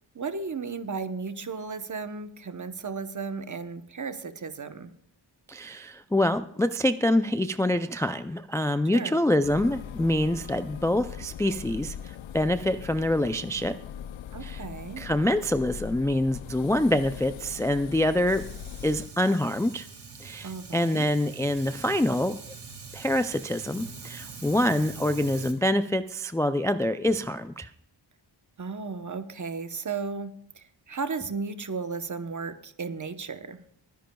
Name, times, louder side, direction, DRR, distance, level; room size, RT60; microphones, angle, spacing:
voice 1, 0.1-4.9 8.9-9.2 14.3-15.1 20.4-21.1 28.6-33.6, right 4 dB, 40° right, 10 dB, 0.9 m, -35 dB
voice 2, 5.5-13.8 14.4-14.6 15.0-18.4 18.8-19.9 20.2-22.4 22.9-27.7, left 1 dB, 5° left, 10 dB, 0.3 m, -26 dB
sound 1, 9.4-19.1, left 9 dB, 85° left, 0.6 m, -41 dB
Fire, 18.3-25.5, right 5 dB, 60° right, 2.3 m, -44 dB
23.0 x 10.5 x 2.3 m, 0.70 s
wide cardioid pair, 130°, 45 cm